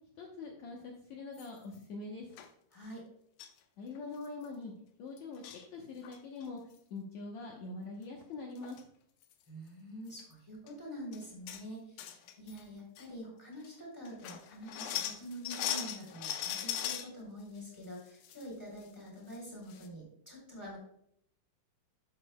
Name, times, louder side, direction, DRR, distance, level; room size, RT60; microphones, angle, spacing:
voice 1, 0.2-2.3 3.8-4.7 5.0-6.6 6.9-8.8, left 3 dB, 65° left, 0 dB, 2.1 m, -43 dB
sound 1, 1.4-1.8 2.4-2.5 3.4-3.6 4.0-4.1 4.2-4.5 5.2-5.6 6.0-6.5 8.2-8.3 8.6-8.8 9.2-9.3 10.1-10.2 10.7-10.8 11.1-11.6 12.0-12.6 13.0-13.1 13.6-13.7 14.1-17.1 17.6-18.4 18.8-18.9 19.3-19.4 19.7-19.9, left 10 dB, 85° left, 2.4 m, -39 dB
voice 2, 2.7-3.0 9.5-20.8, equal, 5° right, -3 dB, 2.9 m, -46 dB
11.5 x 8.3 x 2.2 m, 0.70 s
omnidirectional pair, 3.9 m